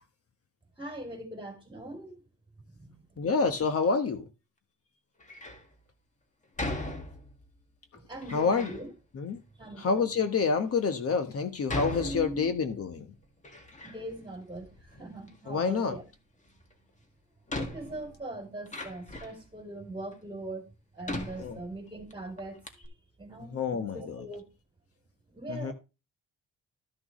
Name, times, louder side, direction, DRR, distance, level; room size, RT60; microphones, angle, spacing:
voice 1, 0.8-2.2 2.7-3.2 8.0-8.9 9.6-10.1 11.9-12.5 13.8-14.7 15.0-16.0 17.6-20.6 20.9-22.9 23.2-24.4 25.3-25.7, right 1 dB, 15° right, 3.9 m, -41 dB
voice 2, 3.2-4.2 8.3-8.7 9.1-9.4 9.8-13.1 15.5-16.0 21.4-21.6 23.5-24.2 25.5-25.7, left 5 dB, 50° left, 1.3 m, -28 dB
Door, 5.2-5.7 6.6-7.5 8.2-8.8 9.6-9.7 10.4-10.5 11.7-12.8 13.2-14.2 14.5-15.4 16.7-16.8 17.5-19.5 20.1-20.2 21.0-22.1 22.4-22.5 22.7-22.9, left 1 dB, 25° left, 1.9 m, -38 dB
13.5 x 6.1 x 3.2 m
cardioid pair, 90°, 30 cm